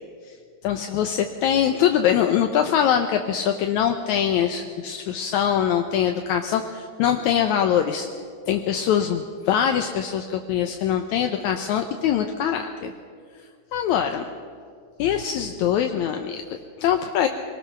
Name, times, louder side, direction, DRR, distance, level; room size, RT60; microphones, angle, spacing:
voice 1, 0.6-8.1 8.5-12.9 13.7-14.3 15.0-17.3, left 9 dB, 75° left, 5 dB, 2.1 m, -23 dB
23.5 x 18.5 x 6.0 m, 2.2 s
omnidirectional pair, 3.5 m